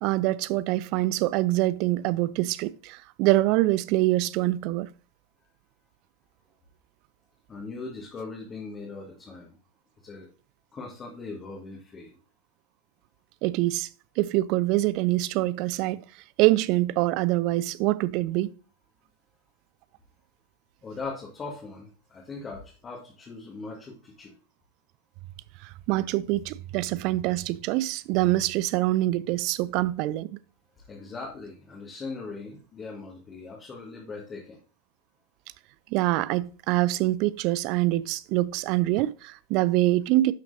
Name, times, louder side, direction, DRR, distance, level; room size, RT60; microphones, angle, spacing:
voice 1, 0.0-4.9 13.4-13.9 14.2-16.0 16.4-18.5 25.6-30.4 35.9-40.3, right 17 dB, 40° right, 0.4 m, -25 dB
voice 2, 7.5-9.6 10.0-10.3 10.7-12.2 20.8-24.3 30.8-34.6, left 3 dB, 20° left, 1.8 m, -40 dB
11.5 x 5.8 x 2.7 m
figure-of-eight pair, 90°, 0 cm